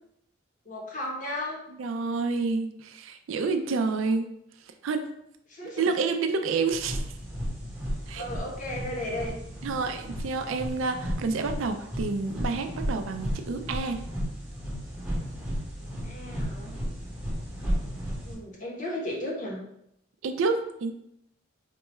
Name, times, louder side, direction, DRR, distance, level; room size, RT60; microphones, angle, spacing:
voice 1, 0.7-1.6 5.5-5.8 8.1-9.4 16.0-16.7 18.2-19.6, left 1 dB, 40° left, -2 dB, 0.8 m, -34 dB
voice 2, 1.8-4.3 4.8-5.1 5.8-7.0 8.1-8.2 9.6-14.0 20.2-20.9, right 4 dB, 75° right, 7 dB, 0.4 m, -28 dB
sound 1, 6.7-18.3, equal, 5° right, 0.8 m, -34 dB
4.4 x 2.3 x 3.0 m, 0.75 s
head